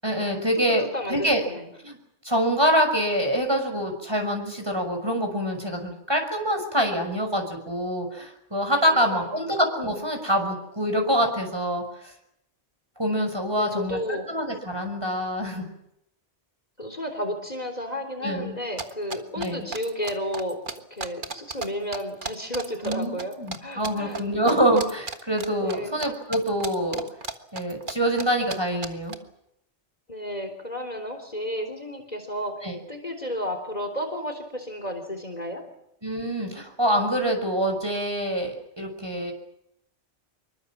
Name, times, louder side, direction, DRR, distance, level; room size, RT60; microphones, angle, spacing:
voice 1, 0.0-1.4 1.8-2.0 2.2-12.1 13.0-15.6 18.2-18.6 19.4-19.7 22.8-27.0 27.5-29.2 32.6-32.8 36.0-39.3, equal, 20° right, 4 dB, 6.0 m, -25 dB
voice 2, 0.5-1.7 8.9-9.5 13.6-14.3 16.8-20.6 20.9-23.3 23.6-24.2 25.6-25.9 30.1-32.6 32.9-35.6, equal, 35° left, 5 dB, 3.7 m, -32 dB
sound 1, 18.8-21.7 21.9-23.6 23.8-24.2 24.5-26.1 26.3-27.9 28.2-28.3 28.5-28.6 28.8-29.1, right 4 dB, 45° right, 1.8 m, -33 dB
26.0 x 23.5 x 7.4 m, 0.79 s
omnidirectional pair, 1.2 m